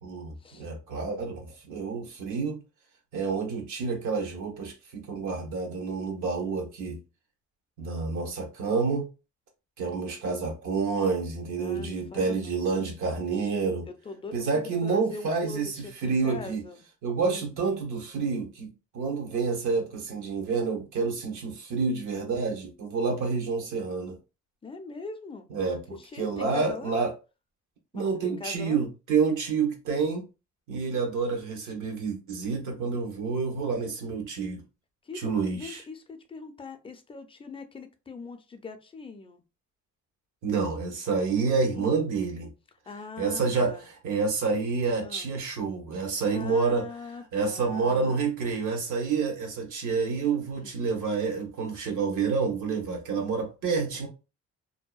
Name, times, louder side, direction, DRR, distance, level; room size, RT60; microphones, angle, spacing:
voice 1, 0.0-2.6 3.1-7.0 7.8-9.1 9.8-13.9 14.3-16.6 17.0-24.2 25.5-27.1 27.9-30.2 30.7-34.6 35.1-35.8 40.4-42.5 43.2-46.8 47.3-54.1, right 4 dB, 80° right, 0.9 m, -28 dB
voice 2, 11.5-12.6 13.9-16.8 17.3-17.5 24.6-25.5 25.9-26.9 27.9-28.8 35.0-39.4 41.7-42.0 42.9-43.8 45.0-45.3 46.0-48.3 50.5-50.8, left 4 dB, 20° left, 0.4 m, -42 dB
2.7 x 2.2 x 2.3 m
cardioid pair, 90°, 30 cm